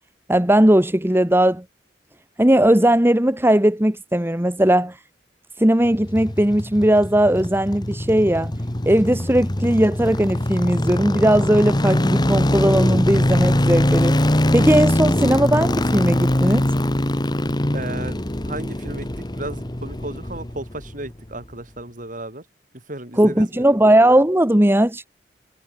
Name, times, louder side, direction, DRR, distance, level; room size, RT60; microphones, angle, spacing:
voice 1, 0.3-1.6 2.4-5.0 5.6-8.5 8.8-16.7 23.2-25.1, right 1 dB, 15° right, 1.5 m, -18 dB
sound 1, 5.9-21.1 21.3-21.4, left 1 dB, 25° left, 1.4 m, -22 dB
voice 2, 17.7-18.2 18.4-22.5 22.7-23.7, right 2 dB, 50° right, 7.0 m, -34 dB
head